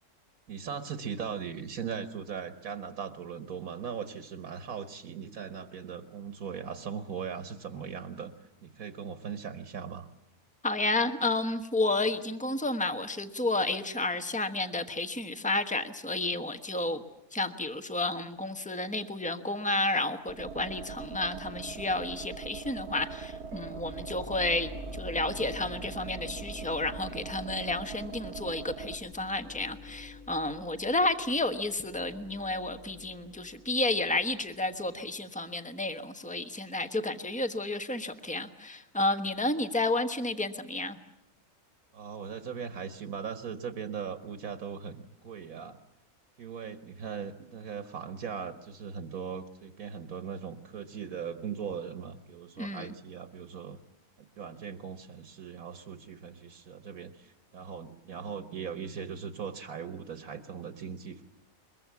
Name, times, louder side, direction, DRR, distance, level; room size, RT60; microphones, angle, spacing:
voice 1, 0.5-10.1 41.9-45.8 46.4-53.8 54.2-61.2, right 7 dB, 70° right, 10 dB, 1.6 m, -39 dB
voice 2, 10.6-17.0 17.3-41.0 52.6-52.9, left 2 dB, 5° left, 9 dB, 1.0 m, -31 dB
sound 1, 20.3-28.9, right 5 dB, 90° right, 1.7 m, -41 dB
sound 2, 23.5-35.4, left 2 dB, 25° left, 2.7 m, -48 dB
22.5 x 22.0 x 8.4 m, 0.85 s
omnidirectional pair, 1.6 m